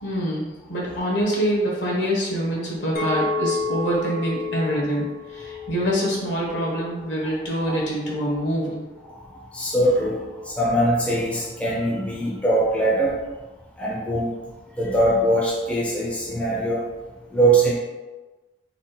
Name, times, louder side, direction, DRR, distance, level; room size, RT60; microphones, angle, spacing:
voice 1, 0.0-8.8, equal, 75° left, -4 dB, 1.2 m, -25 dB
Chink clink, 3.0-7.3 7.8-8.1, left 4 dB, 50° left, 0.6 m, -31 dB
voice 2, 9.5-13.2 13.8-14.3 14.8-16.9 17.3-17.7, right 1 dB, 5° left, -4 dB, 0.5 m, -22 dB
3.7 x 2.3 x 3.9 m, 1.2 s
head